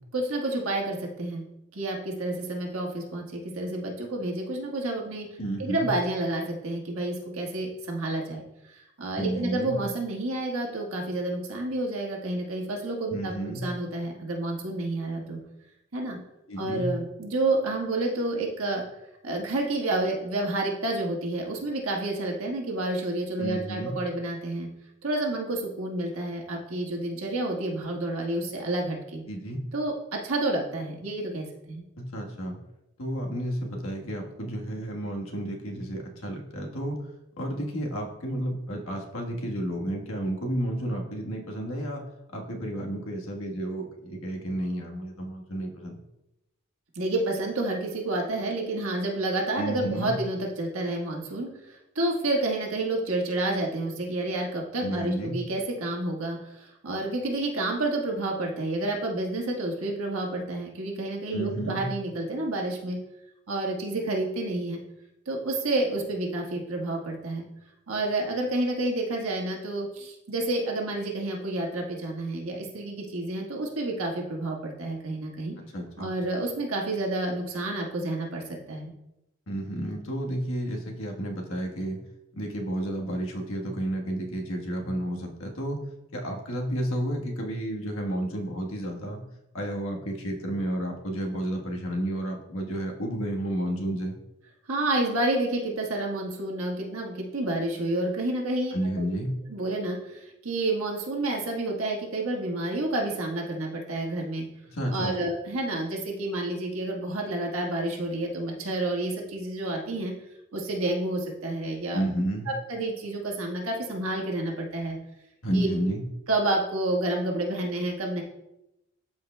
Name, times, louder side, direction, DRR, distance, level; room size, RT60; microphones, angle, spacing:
voice 1, 0.1-1.4 1.7-5.3 5.6-15.4 15.9-16.2 16.6-18.8 19.2-24.7 25.0-29.2 29.7-29.9 30.2-31.8 46.9-63.0 63.5-64.8 65.2-67.5 67.9-75.6 76.0-78.9 94.7-99.0 99.5-104.4 104.9-110.1 110.5-112.0 112.5-115.0 115.5-115.7 116.3-118.2, right 2 dB, 85° right, 0 dB, 1.5 m, -29 dB
voice 2, 5.4-5.9 9.2-9.8 13.1-13.6 16.5-16.9 23.4-23.9 29.3-29.6 32.0-32.6 33.0-37.0 37.4-42.0 42.3-45.9 49.6-50.1 54.8-55.4 61.3-61.9 75.6-76.1 79.5-82.0 82.3-85.8 86.1-89.2 89.5-94.2 98.7-99.3 104.7-105.1 111.9-112.5 115.4-116.0, right 1 dB, 80° left, 0 dB, 1.3 m, -31 dB
13.0 x 4.7 x 2.2 m, 0.88 s
head